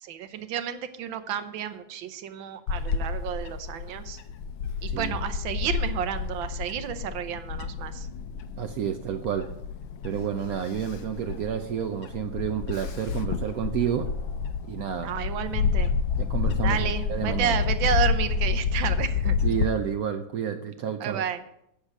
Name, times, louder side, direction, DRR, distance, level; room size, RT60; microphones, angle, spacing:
voice 1, 0.0-4.2 4.8-8.1 15.0-15.9 16.6-19.4 21.0-21.4, right 9 dB, 90° right, 10 dB, 1.6 m, -31 dB
Bird / Wind, 2.7-19.7, left 6 dB, 80° left, 1.4 m, -29 dB
voice 2, 8.6-9.5 10.0-14.1 14.7-15.1 16.2-16.8 17.1-17.6 19.4-21.2, right 9 dB, 70° right, 7 dB, 0.8 m, -30 dB
8.7 x 6.6 x 7.2 m, 0.79 s
omnidirectional pair, 2.1 m